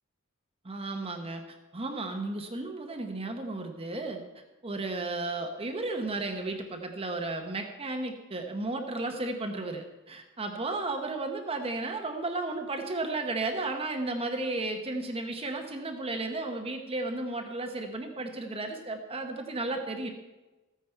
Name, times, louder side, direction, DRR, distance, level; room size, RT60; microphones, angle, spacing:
voice 1, 0.6-1.4 1.7-4.2 4.6-20.1, right 2 dB, 30° right, 4 dB, 0.9 m, -34 dB
14.0 x 9.2 x 4.5 m, 1.1 s
head